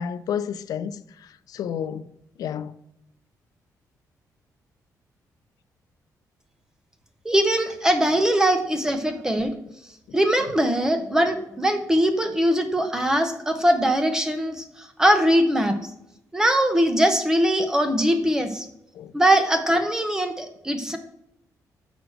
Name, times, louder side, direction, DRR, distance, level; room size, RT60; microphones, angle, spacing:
voice 1, 0.0-2.1 2.4-2.7 18.9-19.1, left 8 dB, 65° left, 0.5 m, -31 dB
voice 2, 7.2-9.5 10.1-15.8 16.3-18.7 19.1-21.0, right 1 dB, 10° right, 0.8 m, -21 dB
6.3 x 6.1 x 6.4 m
wide cardioid pair, 175°, 7 cm